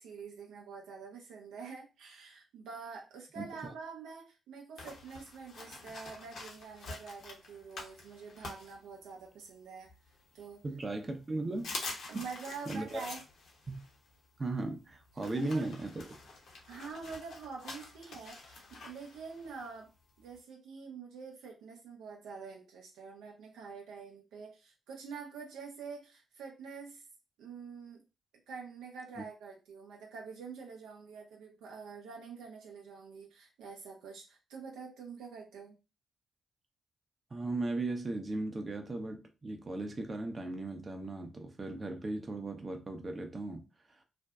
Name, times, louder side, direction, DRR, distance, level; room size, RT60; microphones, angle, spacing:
voice 1, 0.0-9.9 10.3-10.6 12.1-13.2 15.4-15.7 16.7-19.9 20.2-27.1 27.4-28.0 28.5-35.8, right 5 dB, 75° right, 0.6 m, -46 dB
sound 1, 4.8-9.4 9.9-10.8 11.2-11.3 11.5-20.4, left 3 dB, 65° left, 0.7 m, -47 dB
voice 2, 10.6-11.7 12.1-12.3 12.7-13.0 13.7-13.8 14.4-16.0 29.2-29.3 37.3-43.7, right 2 dB, 35° right, 0.6 m, -37 dB
2.5 x 2.2 x 2.3 m
hypercardioid pair, 40°, 0 cm